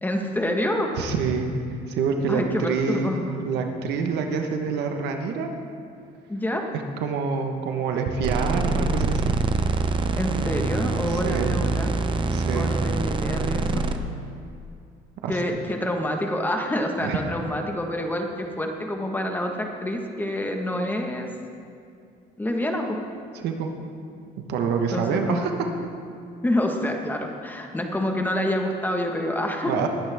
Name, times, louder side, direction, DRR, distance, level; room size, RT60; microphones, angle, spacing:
voice 1, 0.0-0.9 2.3-3.4 6.3-6.6 10.1-11.9 12.5-13.9 15.3-21.3 22.4-23.0 24.9-25.6 26.4-29.9, left 1 dB, 10° left, 2 dB, 1.4 m, -27 dB
voice 2, 1.0-1.5 1.9-3.1 3.4-5.5 7.0-9.3 11.2-11.6 12.3-12.7 15.2-15.3 17.0-17.2 23.4-23.7 24.5-25.7 29.7-29.9, right 5 dB, 80° right, 4 dB, 1.3 m, -26 dB
sound 1, 8.2-14.0, right 3 dB, 30° right, 0.8 m, -25 dB
20.0 x 10.0 x 3.6 m, 2.4 s
cardioid pair, 110°, 17 cm